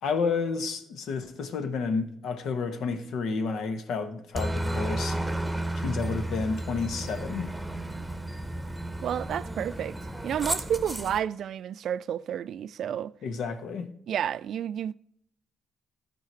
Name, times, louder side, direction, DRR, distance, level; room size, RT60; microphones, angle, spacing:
voice 1, 0.0-5.2 5.7-7.5 13.2-13.9, left 4 dB, 75° left, 1.1 m, -30 dB
Aircraft, 4.4-11.2, right 1 dB, 5° right, 1.0 m, -32 dB
voice 2, 9.0-10.0 10.2-13.1 14.1-14.9, right 9 dB, 70° right, 0.3 m, -30 dB
12.5 x 4.7 x 4.6 m
cardioid pair, 90°, 0 cm